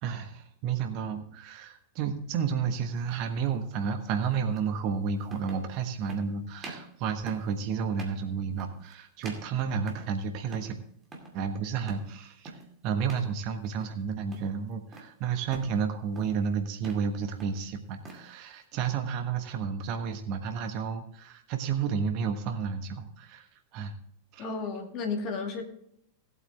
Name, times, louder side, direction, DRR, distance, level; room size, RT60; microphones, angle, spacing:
voice 1, 0.0-10.7 11.3-23.5 23.7-23.9 24.3-24.5, right 6 dB, 40° right, 7 dB, 1.3 m, -31 dB
sound 1, 3.1-3.3 4.6-4.7 5.3-5.7 6.1-6.3 6.6-6.9 7.3-7.5 7.9-8.2 8.6-8.9 9.2-10.2 10.5-10.8 11.0-11.4 11.9-12.1 12.5-12.7 13.1-13.3 13.6-14.0 14.3-15.1 15.5-15.8 16.1-16.4 16.7-17.1 17.4-18.3, right 2 dB, 20° right, 2.3 m, -45 dB
voice 2, 24.4-25.6, left 4 dB, 40° left, 4 dB, 2.2 m, -33 dB
18.0 x 8.3 x 3.4 m, 0.69 s
figure-of-eight pair, 90°, 0 cm